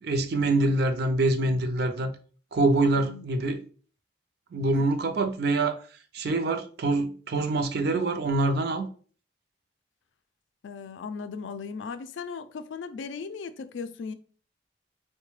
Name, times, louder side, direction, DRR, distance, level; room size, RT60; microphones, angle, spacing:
voice 1, 0.0-2.1 2.5-3.6 4.5-5.8 6.1-8.9, right 2 dB, 60° right, 0.4 m, -25 dB
voice 2, 2.9-3.3 4.7-4.8 10.6-14.1, left 5 dB, 90° left, 0.4 m, -37 dB
3.7 x 2.1 x 3.0 m
head